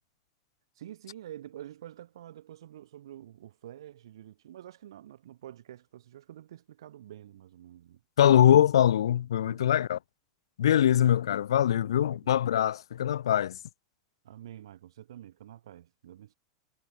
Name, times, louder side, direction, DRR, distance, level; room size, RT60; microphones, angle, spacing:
voice 1, 0.8-8.0 9.4-9.8 10.9-11.0 11.7-11.9 14.2-16.3, right 12 dB, 60° right, 3.6 m, -48 dB
voice 2, 8.2-10.0 10.6-13.6, left 10 dB, 65° left, 1.3 m, -23 dB
figure-of-eight pair, 90°, 3 cm